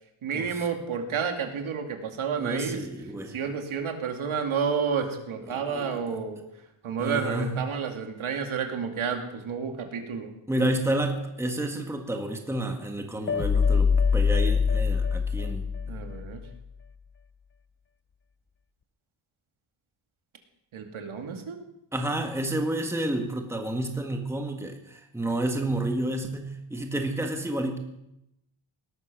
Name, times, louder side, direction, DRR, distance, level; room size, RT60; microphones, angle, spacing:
voice 1, 0.2-2.9 3.3-6.4 6.8-10.3 15.9-16.4 20.7-21.6, right 6 dB, 70° right, 4 dB, 2.6 m, -30 dB
voice 2, 2.4-3.4 5.5-6.0 7.0-7.6 10.5-16.0 21.9-27.8, right 1 dB, 5° right, 3 dB, 1.7 m, -30 dB
sound 1, 13.3-16.5, left 5 dB, 25° left, 0.5 m, -24 dB
18.5 x 12.5 x 6.2 m, 0.84 s
wide cardioid pair, 165°, 50 cm